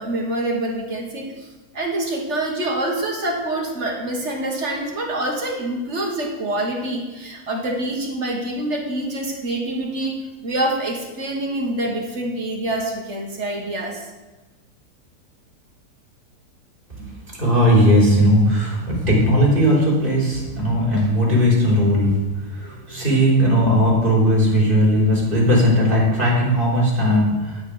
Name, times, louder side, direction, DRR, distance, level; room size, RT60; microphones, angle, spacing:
voice 1, 0.0-1.5 1.7-10.1 10.4-14.0, right 1 dB, 45° right, 0 dB, 1.8 m, -26 dB
voice 2, 17.4-22.2 22.5-27.6, equal, 30° right, -5 dB, 3.7 m, -17 dB
9.7 x 8.4 x 4.9 m, 1.1 s
omnidirectional pair, 1.7 m